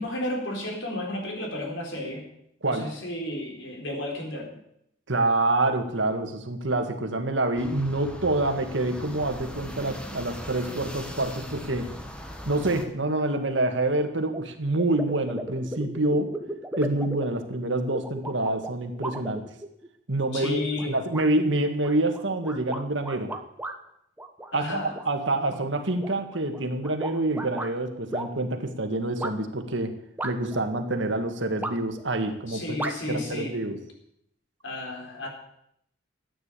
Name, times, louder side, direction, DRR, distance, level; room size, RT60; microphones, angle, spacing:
voice 1, 0.0-2.3 2.6-4.6 20.3-20.9 24.5-25.0 32.5-33.6 34.6-35.3, left 1 dB, 75° left, 1 dB, 4.2 m, -32 dB
voice 2, 5.1-11.9 12.5-16.3 16.8-19.5 20.1-20.6 20.9-23.4 24.5-24.8 25.1-30.0 30.2-33.8, right 2 dB, 70° right, 6 dB, 1.9 m, -27 dB
sound 1, 7.6-12.8, equal, 5° left, 1.5 m, -40 dB
sound 2, 14.3-14.4 14.8-19.9 20.4-20.9 21.1-21.3 21.8-23.8 24.2-25.1 25.5-27.7 28.1-28.3 29.2-29.3 30.2-30.6 31.6-32.0 32.8-32.9, right 1 dB, 10° right, 1.1 m, -35 dB
13.5 x 9.4 x 8.5 m, 0.73 s
head